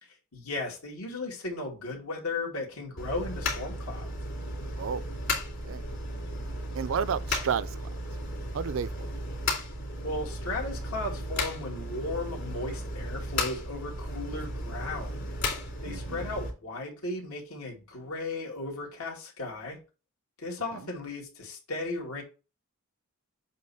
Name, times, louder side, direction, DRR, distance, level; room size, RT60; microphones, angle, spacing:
voice 1, 0.0-4.1 10.0-15.3 15.8-19.8 20.4-22.2, left 2 dB, 85° left, 2.4 m, -36 dB
sound 1, 3.0-16.5, left 1 dB, 55° left, 2.6 m, -34 dB
voice 2, 6.7-7.8 8.5-9.1 15.8-16.3 20.7-20.8, right 7 dB, 65° right, 0.4 m, -31 dB
7.5 x 2.9 x 5.6 m
head